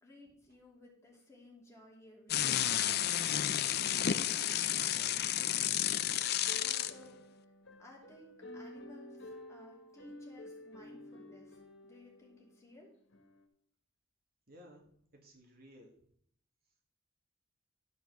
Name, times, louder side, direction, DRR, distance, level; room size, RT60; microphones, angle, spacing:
voice 1, 0.0-2.7 6.5-7.2 7.8-12.9, left 2 dB, 15° left, -2 dB, 2.7 m, -57 dB
sound 1, 2.3-6.9, left 11 dB, 55° left, 0.5 m, -31 dB
voice 2, 4.8-5.3 14.5-14.8 15.2-16.0, equal, 55° right, 1 dB, 2.1 m, -57 dB
sound 2, 5.6-12.6 13.1-13.4, left 1 dB, 85° left, 1.5 m, -51 dB
12.0 x 5.2 x 6.3 m, 0.65 s
head